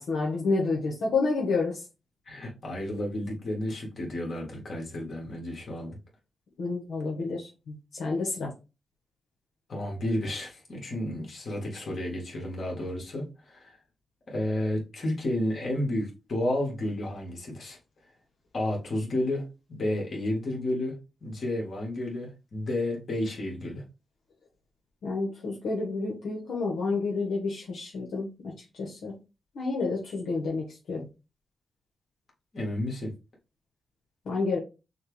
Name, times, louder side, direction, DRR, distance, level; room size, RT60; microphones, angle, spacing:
voice 1, 0.0-1.8 6.6-8.5 25.0-28.3 28.8-29.1 29.5-31.1 34.3-34.6, left 3 dB, 85° left, 1.2 m, -29 dB
voice 2, 2.3-6.0 9.7-13.8 14.3-17.8 18.5-23.8 32.5-33.1, left 1 dB, 60° left, 2.0 m, -31 dB
6.3 x 2.3 x 3.2 m
cardioid pair, 70°, 0 cm